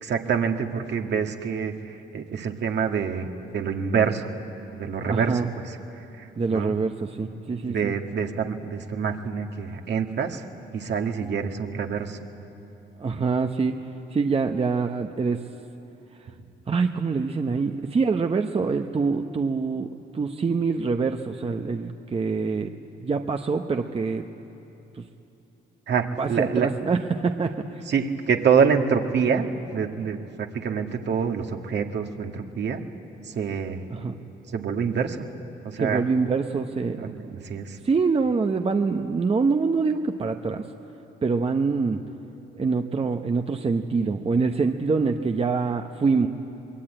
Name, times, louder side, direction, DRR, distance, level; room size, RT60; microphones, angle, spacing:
voice 1, 0.0-3.3 3.5-4.3 4.8-5.5 6.2-6.7 7.7-10.5 10.7-12.2 25.9-26.7 27.9-29.5 29.7-32.8 33.2-33.8 34.5-35.3 35.6-36.0 37.0-37.8, right 6 dB, 60° right, 4 dB, 1.8 m, -26 dB
voice 2, 5.1-5.5 6.4-7.9 13.0-13.7 14.1-15.4 16.2-16.3 16.7-19.9 20.1-22.7 23.0-24.3 24.9-25.1 26.2-27.8 33.9-34.2 35.7-37.4 37.8-40.7 41.2-42.0 42.5-46.3, right 4 dB, 30° right, 5 dB, 0.9 m, -25 dB
22.5 x 21.5 x 9.0 m, 3.0 s
cardioid pair, 90°, 20 cm